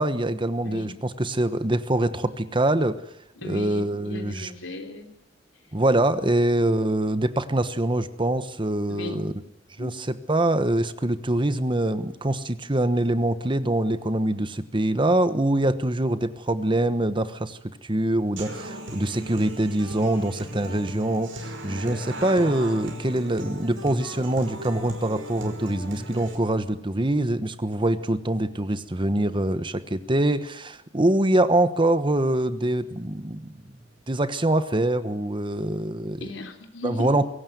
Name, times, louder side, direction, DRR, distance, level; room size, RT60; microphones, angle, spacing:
voice 1, 0.0-3.0 3.4-4.5 5.7-9.3 9.8-9.9 10.3-33.5 34.1-36.3 36.8-37.3, right 1 dB, 25° right, 12 dB, 1.2 m, -24 dB
voice 2, 0.6-0.9 3.4-5.1 8.9-9.4 9.8-10.0 36.2-37.2, left 2 dB, 80° left, 5 dB, 3.4 m, -36 dB
Human voice / Acoustic guitar, 18.4-26.3, right 1 dB, 80° right, 5.5 m, -36 dB
23.0 x 17.5 x 9.4 m, 0.85 s
head